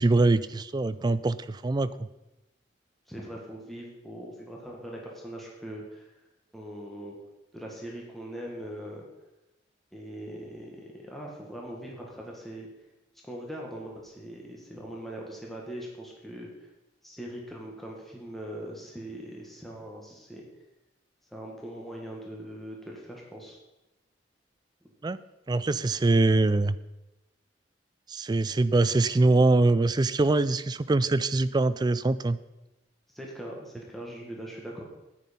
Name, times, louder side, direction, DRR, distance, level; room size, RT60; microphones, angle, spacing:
voice 1, 0.0-1.9 25.0-25.2 25.5-26.8 28.1-32.4, right 2 dB, 25° right, 14 dB, 0.4 m, -23 dB
voice 2, 3.1-6.1 6.5-7.2 7.5-9.1 9.9-12.7 13.2-16.7 17.0-20.4 21.3-23.6 33.1-34.8, right 1 dB, ahead, -2 dB, 1.8 m, -41 dB
9.7 x 9.3 x 5.3 m, 0.98 s
head